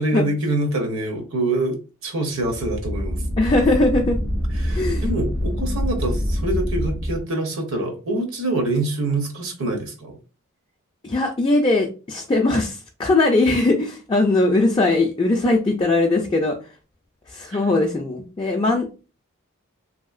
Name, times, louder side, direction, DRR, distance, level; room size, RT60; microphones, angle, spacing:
voice 1, 0.0-3.2 4.5-10.2 17.5-17.7, right 2 dB, 65° right, 0.7 m, -25 dB
sound 1, 2.4-7.2, equal, 80° right, 1.3 m, -25 dB
voice 2, 3.4-4.2 4.7-5.0 11.0-16.6 17.3-18.9, left 2 dB, 20° left, 0.4 m, -20 dB
2.8 x 2.8 x 2.4 m
head